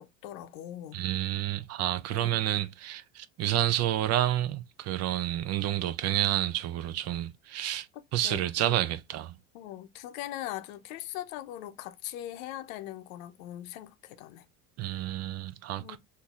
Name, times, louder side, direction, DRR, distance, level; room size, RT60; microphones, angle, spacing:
voice 1, 0.0-1.0 2.1-2.3 8.2-8.8 9.5-14.5 15.8-16.0, left 13 dB, 80° left, 0.6 m, -41 dB
voice 2, 0.9-7.9 8.1-9.3 14.8-16.0, right 13 dB, 40° right, 0.4 m, -29 dB
4.0 x 2.6 x 2.3 m
supercardioid pair, 90°, 40 cm